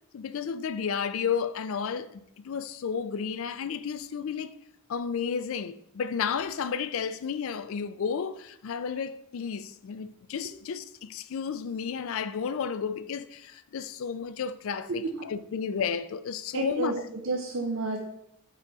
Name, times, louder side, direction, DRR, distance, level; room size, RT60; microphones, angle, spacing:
voice 1, 0.1-4.6 4.9-16.9, left 6 dB, 70° left, 0.4 m, -32 dB
voice 2, 16.5-18.0, right 2 dB, 60° right, 0.6 m, -30 dB
5.6 x 4.7 x 3.9 m
head